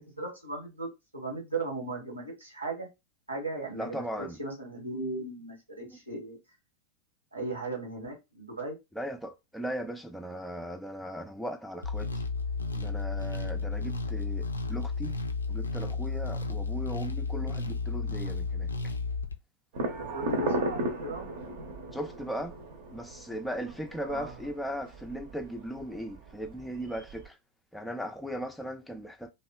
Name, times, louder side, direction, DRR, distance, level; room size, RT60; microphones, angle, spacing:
voice 1, 0.0-2.9 3.3-6.4 7.3-8.8 20.1-21.3 24.0-24.3, right 2 dB, 85° right, 1.1 m, -37 dB
voice 2, 3.7-4.4 5.9-6.0 8.9-12.2 12.8-15.2 15.5-18.9 21.9-22.6 22.9-27.4 27.7-29.3, equal, ahead, 0.4 m, -38 dB
sound 1, 11.8-19.4, left 4 dB, 75° left, 0.3 m, -32 dB
sound 2, 19.7-27.3, right 2 dB, 55° right, 0.7 m, -36 dB
2.7 x 2.4 x 2.3 m
figure-of-eight pair, 90°, 0 cm